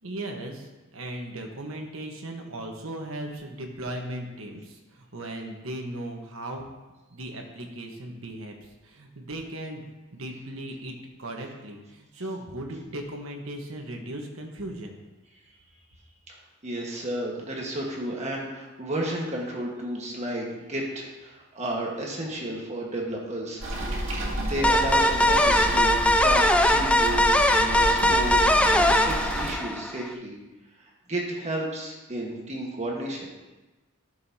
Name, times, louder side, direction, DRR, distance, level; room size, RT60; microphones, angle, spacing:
voice 1, 0.0-6.7 7.1-8.6 8.8-14.9, right 1 dB, 85° right, 2 dB, 1.3 m, -37 dB
voice 2, 16.6-23.6 24.4-30.3 30.8-33.3, right 1 dB, 35° right, -2 dB, 1.5 m, -32 dB
sound 1, 23.6-29.5, right 1 dB, 70° right, 2.2 m, -30 dB
sound 2, 24.6-30.1, left 1 dB, 5° left, 0.3 m, -21 dB
12.5 x 6.7 x 2.8 m, 1.1 s
head